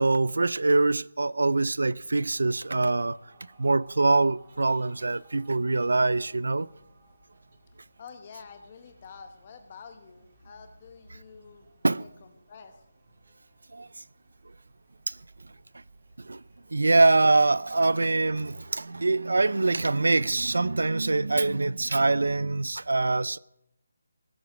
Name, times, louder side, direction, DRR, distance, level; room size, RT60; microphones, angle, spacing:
voice 1, 0.0-3.2 3.6-6.7 11.8-12.0 13.7-13.9 15.1-15.2 16.2-16.4 16.7-23.4, right 3 dB, 80° right, 0.4 m, -24 dB
sound 1, 2.1-20.8, right 2 dB, 25° right, 2.0 m, -60 dB
voice 2, 8.0-11.7 12.0-12.8, left 6 dB, 20° left, 0.9 m, -48 dB
18.5 x 8.0 x 6.0 m
hypercardioid pair, 180°, 0 cm